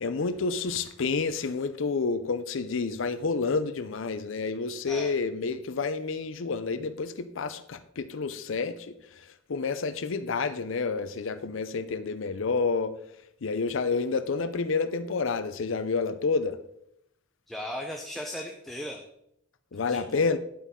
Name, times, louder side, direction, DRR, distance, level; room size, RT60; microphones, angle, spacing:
voice 1, 0.0-12.9 13.4-16.6 19.7-20.4, left 4 dB, 70° left, 11 dB, 0.5 m, -29 dB
voice 2, 17.5-19.0 19.9-20.2, left 1 dB, ahead, 1 dB, 0.8 m, -37 dB
9.4 x 8.3 x 3.7 m, 0.76 s
head